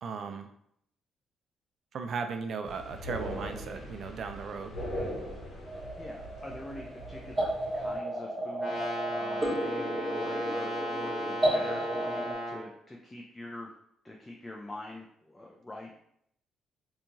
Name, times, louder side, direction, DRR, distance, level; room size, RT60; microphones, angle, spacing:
voice 1, 0.0-0.5 1.9-4.8, right 5 dB, 60° right, 6 dB, 0.3 m, -36 dB
sound 1, 2.6-8.0, equal, 75° left, 0.9 m, -40 dB
sound 2, 5.7-12.3, right 1 dB, 25° right, 0.9 m, -33 dB
voice 2, 6.0-13.7 14.0-15.9, left 1 dB, 15° left, -2 dB, 0.4 m, -45 dB
Brass instrument, 8.6-12.6, equal, 10° right, 1.4 m, -35 dB
2.8 x 2.3 x 2.6 m, 0.71 s
cardioid pair, 90°, 0 cm